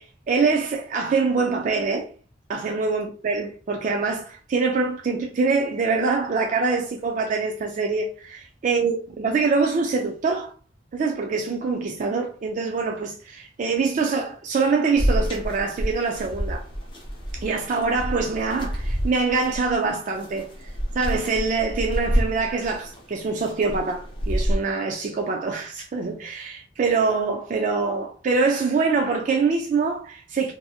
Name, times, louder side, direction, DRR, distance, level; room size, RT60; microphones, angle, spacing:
voice 1, 0.0-2.1 2.5-10.5 10.9-16.6 17.3-30.5, right 4 dB, 40° right, 0.3 m, -24 dB
sound 1, 15.0-24.5, equal, 25° left, 0.6 m, -28 dB
2.6 x 2.6 x 2.3 m
head